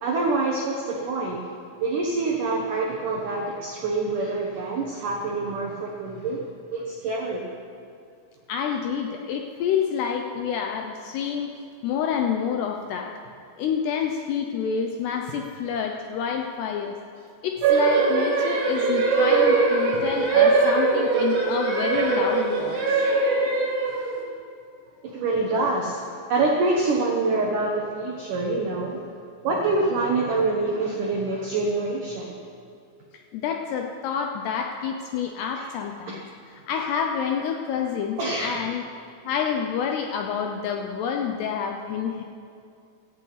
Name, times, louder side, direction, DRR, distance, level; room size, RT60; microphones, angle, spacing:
voice 1, 0.0-1.4 1.8-7.5 25.0-29.0 29.4-32.4 35.6-35.7 36.1-36.2 38.2-38.6, right 3 dB, 85° right, -1 dB, 1.8 m, -26 dB
voice 2, 8.5-11.5 11.8-13.1 13.6-17.0 17.4-23.0 33.1-36.2 36.7-38.9 39.2-42.2, left 7 dB, 90° left, 2 dB, 2.3 m, -28 dB
sound 1, 17.6-24.2, right 4 dB, 60° right, 4.1 m, -21 dB
17.0 x 15.0 x 4.1 m, 2.5 s
omnidirectional pair, 5.8 m